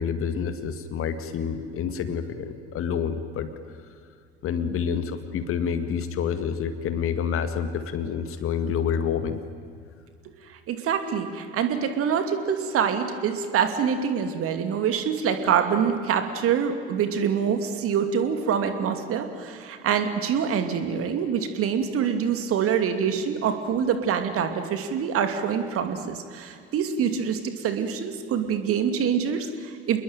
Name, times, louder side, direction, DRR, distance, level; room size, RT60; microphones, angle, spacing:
voice 1, 0.0-3.5 4.4-9.4, left 7 dB, 40° left, 10 dB, 2.2 m, -28 dB
voice 2, 10.7-30.0, right 7 dB, 45° right, 8 dB, 2.7 m, -25 dB
28.5 x 21.0 x 9.2 m, 2.3 s
figure-of-eight pair, 65°, 33 cm